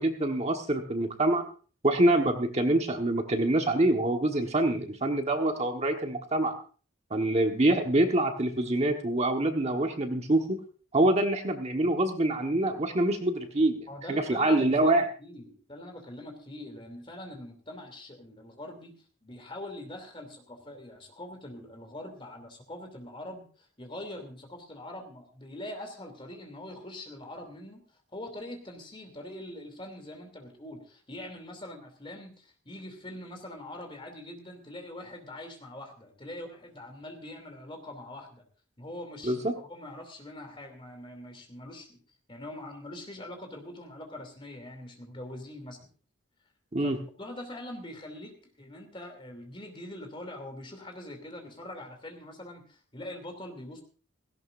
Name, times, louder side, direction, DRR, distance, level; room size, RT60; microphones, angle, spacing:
voice 1, 0.0-1.4 1.8-6.6 7.1-10.6 10.9-13.8 14.1-15.0 39.2-39.5 46.7-47.0, right 1 dB, 35° right, 4 dB, 1.4 m, -25 dB
voice 2, 13.9-18.9 19.2-27.8 28.1-38.4 38.8-42.0 42.3-45.9 46.8-53.8, left 1 dB, 25° left, 5 dB, 2.8 m, -43 dB
17.5 x 16.5 x 2.6 m, 0.39 s
head